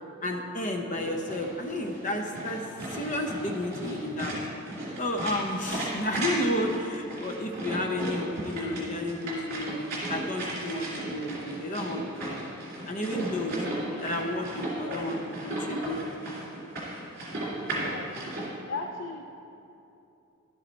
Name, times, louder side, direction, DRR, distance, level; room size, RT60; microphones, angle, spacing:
voice 1, 0.2-4.4 5.0-12.4 12.9-13.6 14.0-16.0, left 1 dB, 35° left, 3 dB, 0.8 m, -32 dB
sound 1, 1.0-18.5, right 1 dB, 45° right, 2.5 m, -35 dB
voice 2, 13.8-14.4 14.8-15.0 17.6-18.2 18.6-19.2, left 4 dB, 60° left, 3 dB, 0.4 m, -38 dB
11.5 x 7.5 x 4.0 m, 2.9 s
head